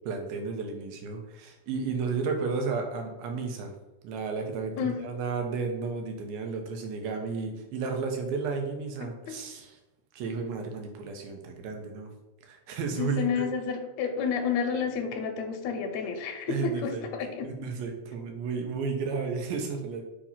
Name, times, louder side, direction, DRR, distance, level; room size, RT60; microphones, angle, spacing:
voice 1, 0.1-3.7 4.0-9.8 10.1-12.1 12.4-13.5 16.5-17.1 17.4-20.0, right 4 dB, 85° right, 3 dB, 2.8 m, -33 dB
voice 2, 9.0-9.3 13.0-17.5, left 6 dB, 75° left, 2 dB, 1.7 m, -30 dB
6.9 x 2.9 x 5.6 m, 1.0 s
omnidirectional pair, 4.1 m